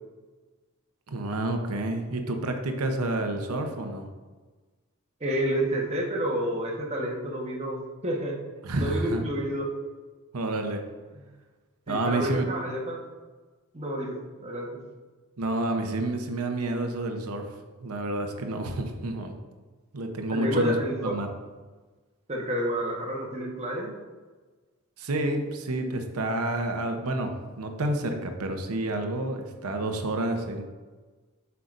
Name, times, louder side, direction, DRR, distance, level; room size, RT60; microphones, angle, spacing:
voice 1, 1.1-4.1 8.6-9.2 10.3-10.8 11.9-12.4 15.4-17.4 17.8-19.3 19.9-20.8 21.0-21.3 25.0-30.6, right 2 dB, 90° right, 5 dB, 0.8 m, -29 dB
voice 2, 5.2-8.4 8.8-9.7 11.1-11.2 11.9-13.0 13.7-14.8 20.3-21.1 22.3-23.9, right 1 dB, 30° right, -2 dB, 1.2 m, -29 dB
7.8 x 5.7 x 2.5 m, 1.3 s
head